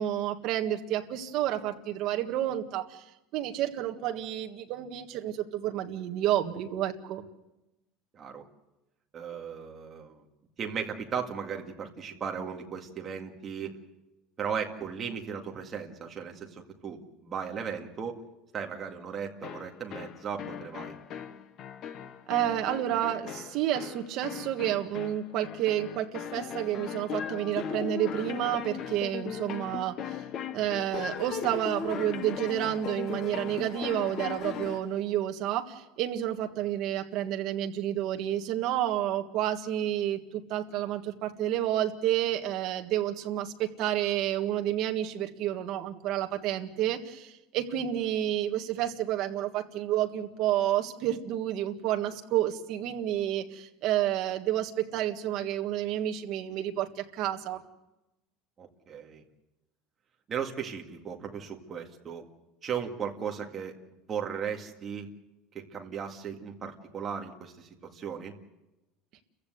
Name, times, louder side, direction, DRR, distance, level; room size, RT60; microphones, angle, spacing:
voice 1, 0.0-3.0 3.3-7.2 22.3-30.2 30.5-57.6, right 12 dB, 40° right, 5 dB, 1.7 m, -30 dB
voice 2, 9.1-10.2 10.6-13.8 14.4-18.2 18.5-20.9 58.6-59.2 60.3-62.3 62.6-63.8 64.1-65.1 65.5-68.4, right 7 dB, 20° right, 2 dB, 2.0 m, -36 dB
sound 1, 19.4-34.9, left 8 dB, 35° left, 1.0 m, -38 dB
29.5 x 15.5 x 8.0 m, 0.98 s
cardioid pair, 175°, 0 cm